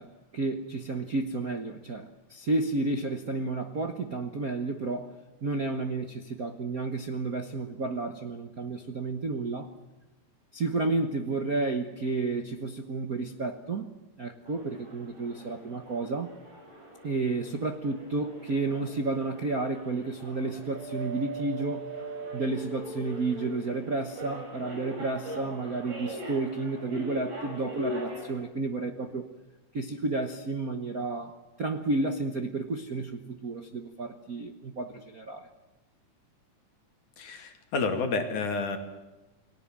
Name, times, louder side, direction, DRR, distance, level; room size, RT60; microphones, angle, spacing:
voice 1, 0.0-5.1 5.4-9.7 10.5-13.9 14.2-16.3 17.0-21.9 22.3-29.3 29.7-35.5, right 3 dB, 60° right, 6 dB, 0.9 m, -31 dB
sound 1, 14.5-28.4, right 1 dB, 75° right, 8.8 m, -41 dB
voice 2, 37.2-38.8, left 4 dB, 70° left, 5 dB, 3.9 m, -30 dB
29.5 x 19.5 x 7.6 m, 1.1 s
omnidirectional pair, 3.7 m